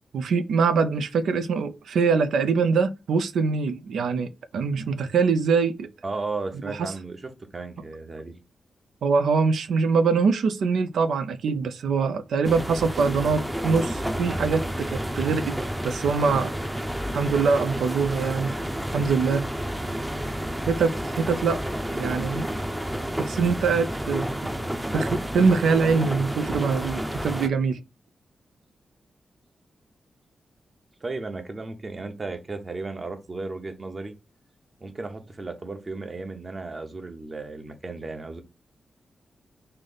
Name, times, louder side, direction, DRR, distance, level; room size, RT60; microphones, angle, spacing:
voice 1, 0.1-5.9 6.6-6.9 9.0-15.6 15.8-16.5 17.1-18.6 18.9-19.5 20.7-21.6 21.9-22.5 23.2-24.3 24.9-27.8, right 5 dB, 85° right, 0.4 m, -23 dB
voice 2, 6.0-8.4 31.0-34.1 34.8-38.4, right 3 dB, 40° right, 1.0 m, -35 dB
sound 1, 12.4-27.5, equal, 10° right, 0.6 m, -30 dB
3.3 x 2.6 x 3.9 m
cardioid pair, 50°, 0 cm